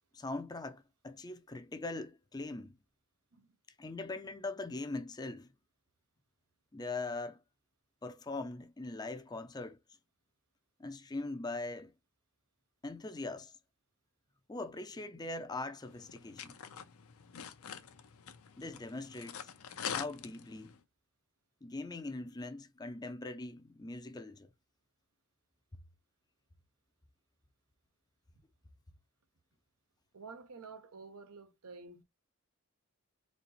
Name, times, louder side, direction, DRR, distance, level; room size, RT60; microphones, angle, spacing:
voice 1, 0.1-2.8 3.8-5.5 6.7-7.4 8.0-9.8 10.8-11.9 12.8-13.5 14.5-16.6 18.6-19.5 19.9-20.7 21.6-24.5, left 2 dB, 20° left, 0.4 m, -41 dB
sound 1, 15.8-20.8, left 8 dB, 80° left, 0.6 m, -45 dB
voice 2, 30.1-32.0, right 4 dB, 90° right, 0.8 m, -50 dB
4.2 x 2.9 x 2.9 m
head